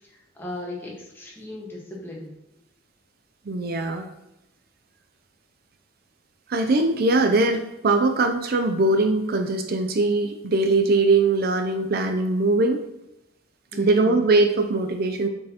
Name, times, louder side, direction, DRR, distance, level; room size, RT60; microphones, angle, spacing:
voice 1, 0.0-2.3 13.7-14.2, left 1 dB, 10° left, -3 dB, 1.3 m, -36 dB
voice 2, 3.5-4.1 6.5-12.8 13.8-15.3, right 2 dB, 50° right, 6 dB, 0.5 m, -21 dB
7.4 x 4.4 x 2.9 m, 0.91 s
head